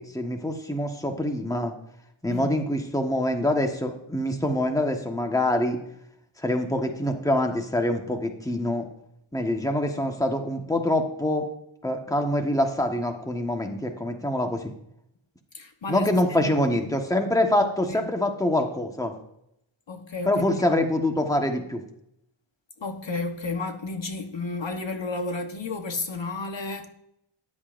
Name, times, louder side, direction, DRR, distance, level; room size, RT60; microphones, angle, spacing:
voice 1, 0.0-1.7 2.2-5.8 6.4-8.9 9.3-11.5 11.8-14.7 15.9-19.1 20.3-21.8, left 1 dB, 5° left, 1.4 m, -25 dB
voice 2, 15.5-16.5 16.8-16.9 17.9-18.1 19.9-20.4 22.8-26.9, left 3 dB, 60° left, 1.3 m, -32 dB
14.5 x 10.5 x 2.6 m
wide cardioid pair, 75°, 49 cm